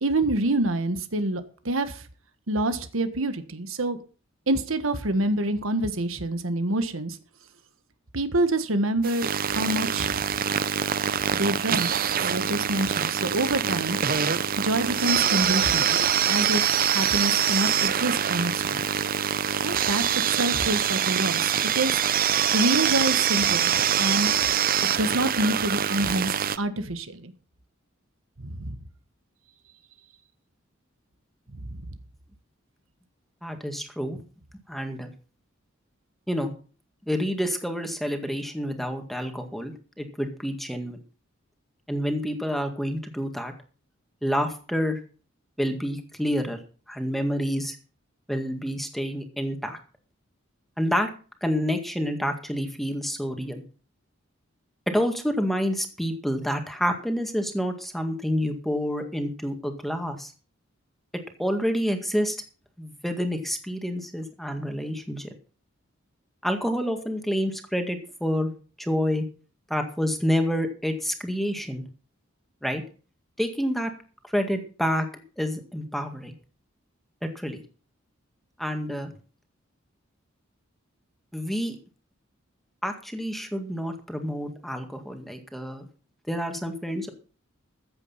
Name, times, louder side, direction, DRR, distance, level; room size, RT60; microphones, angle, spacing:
voice 1, 0.0-2.0 2.5-4.0 4.5-7.2 8.1-10.2 11.3-14.0 14.6-16.0 16.3-18.9 19.6-20.0 20.3-22.0 22.5-23.7 24.0-24.4 25.0-27.3 28.4-28.8 31.6-31.8, right 1 dB, 85° right, 10 dB, 1.5 m, -27 dB
sound 1, 9.0-26.6, right 8 dB, 45° right, 0.6 m, -24 dB
voice 2, 33.4-34.2 34.7-35.1 36.3-36.5 37.1-41.0 41.9-43.5 44.2-45.0 45.6-46.6 46.9-47.8 48.3-49.8 50.8-51.1 51.4-53.6 54.9-60.3 61.4-62.4 62.8-65.3 66.4-68.5 68.8-69.3 69.7-71.8 72.6-72.8 73.4-73.9 74.2-75.1 75.4-76.3 77.2-77.6 78.6-79.1 81.3-81.8 82.8-85.9 86.3-87.1, equal, ahead, 5 dB, 1.9 m, -28 dB
14.5 x 8.4 x 5.7 m, 0.38 s
head